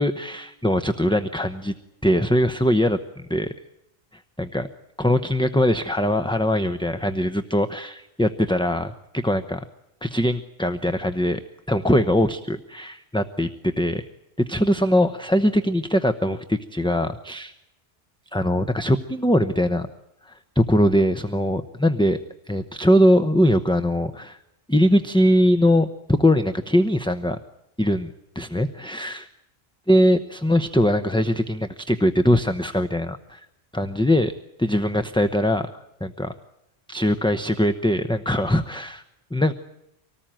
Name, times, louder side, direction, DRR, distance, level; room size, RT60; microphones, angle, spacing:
voice 1, 0.0-1.7 2.0-3.5 4.1-4.7 5.0-9.6 10.0-11.4 11.7-14.1 14.4-17.5 18.3-19.9 20.2-22.2 22.5-24.4 24.7-27.4 27.8-29.2 29.9-33.4 33.7-35.7 36.0-36.3 36.9-39.0 39.3-39.5, equal, 5° left, 9 dB, 0.7 m, -21 dB
25.5 x 18.5 x 9.0 m, 0.86 s
omnidirectional pair, 1.1 m